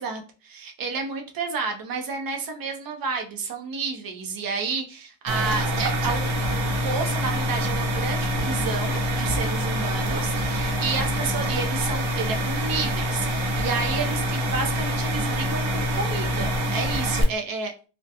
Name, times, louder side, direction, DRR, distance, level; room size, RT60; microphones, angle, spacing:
voice 1, 0.0-17.9, right 4 dB, 45° right, 4 dB, 0.5 m, -31 dB
sound 1, 5.3-17.2, equal, 75° right, 0.8 m, -25 dB
2.3 x 2.1 x 2.7 m, 0.34 s
cardioid pair, 150°, 49 cm